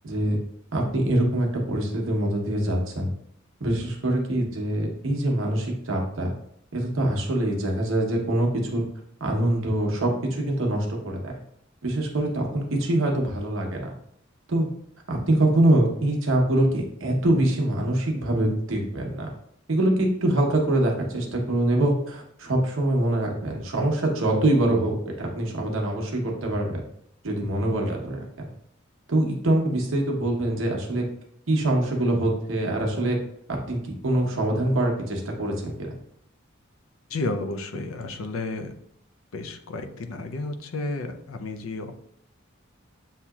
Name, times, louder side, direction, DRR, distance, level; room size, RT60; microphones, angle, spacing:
voice 1, 0.0-0.4 0.7-3.1 3.6-6.3 6.7-8.8 9.2-11.3 11.8-13.9 14.5-14.7 15.1-19.3 19.7-26.8 27.2-28.5 29.1-31.1 31.5-33.2 33.5-33.8 34.0-35.9, right 1 dB, 70° right, 0 dB, 0.9 m, -24 dB
voice 2, 37.1-38.7 39.3-41.9, left 2 dB, 80° left, 7 dB, 0.5 m, -32 dB
7.5 x 2.8 x 2.3 m, 0.70 s
head